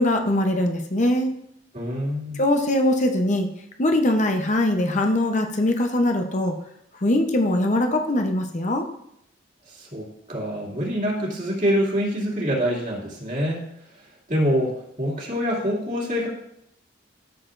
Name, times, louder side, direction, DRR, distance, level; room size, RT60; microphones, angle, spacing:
voice 1, 0.0-1.3 2.4-3.5 3.8-6.5 7.0-8.9, left 1 dB, 40° left, 4 dB, 0.8 m, -21 dB
voice 2, 1.7-2.4 9.7-13.6 14.3-16.3, equal, 45° right, -3 dB, 2.5 m, -25 dB
13.0 x 6.6 x 2.6 m, 0.75 s
head